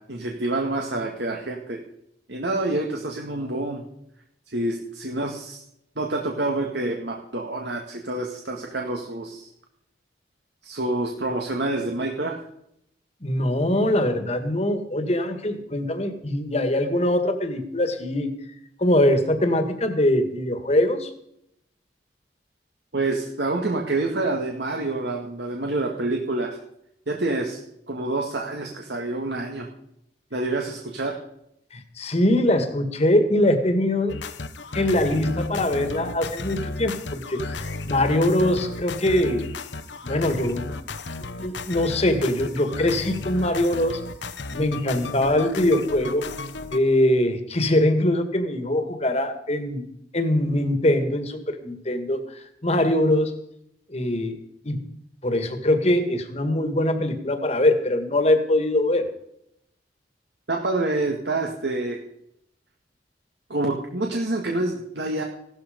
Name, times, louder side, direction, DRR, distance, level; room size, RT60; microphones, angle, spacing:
voice 1, 0.0-1.8 2.3-3.9 4.5-5.6 6.0-9.5 10.6-12.4 22.9-26.6 27.1-27.6 27.9-29.7 30.3-31.2 60.5-62.0 63.5-65.2, right 2 dB, 70° right, 1 dB, 2.0 m, -27 dB
voice 2, 13.2-18.3 18.8-21.1 31.7-34.1 34.7-39.5 40.0-40.7 41.4-44.0 44.5-46.3 46.7-49.9 50.1-53.4 53.9-54.4 54.6-54.8 55.2-59.0, left 1 dB, 35° left, 8 dB, 1.9 m, -22 dB
sound 1, 34.1-46.8, left 3 dB, 85° left, 1.2 m, -34 dB
16.5 x 13.0 x 5.2 m, 0.75 s
head